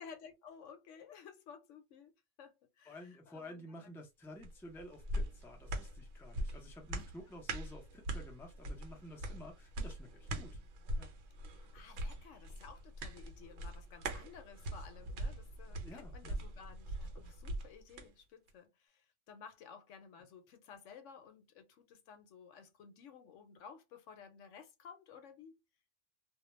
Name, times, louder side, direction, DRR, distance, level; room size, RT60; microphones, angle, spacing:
voice 1, 0.0-2.1 2.4-3.9 6.9-7.3 8.9-9.1 11.5-25.6, left 6 dB, 75° left, 1.0 m, -55 dB
voice 2, 2.8-10.6 11.0-11.1 15.8-16.4, left 1 dB, 5° left, 0.4 m, -52 dB
sound 1, 4.4-18.1 18.5-18.6, right 1 dB, 65° right, 0.9 m, -42 dB
2.2 x 2.2 x 3.0 m
omnidirectional pair, 1.3 m